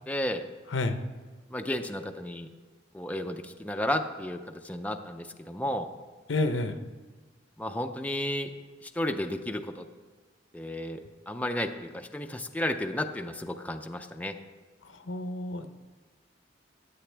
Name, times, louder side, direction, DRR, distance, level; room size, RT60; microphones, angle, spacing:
voice 1, 0.1-0.4 1.5-2.5 2.9-5.9 7.6-8.5 8.8-9.8 10.5-14.3, left 1 dB, 10° left, 5 dB, 0.5 m, -33 dB
voice 2, 6.3-6.8 15.1-15.7, left 2 dB, 90° left, 8 dB, 0.8 m, -29 dB
14.5 x 9.4 x 3.4 m, 1.3 s
head